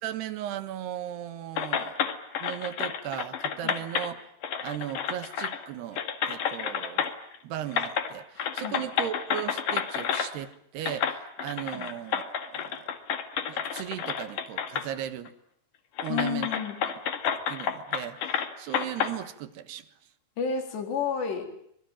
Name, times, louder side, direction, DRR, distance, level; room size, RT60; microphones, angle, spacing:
voice 1, 0.0-2.0 2.4-4.2 4.6-6.0 6.3-7.1 7.4-12.9 13.5-15.3 16.0-16.5 17.5-19.9, right 11 dB, 75° right, 11 dB, 3.4 m, -37 dB
sound 1, 1.6-4.1 4.4-5.7 6.0-7.4 7.7-8.1 8.4-10.3 10.9-14.9 15.3-15.4 16.0-19.1, left 8 dB, 55° left, 3.2 m, -30 dB
voice 2, 16.1-16.8 20.4-21.5, left 6 dB, 75° left, 4 dB, 6.0 m, -30 dB
25.5 x 22.0 x 8.9 m, 0.71 s
omnidirectional pair, 4.9 m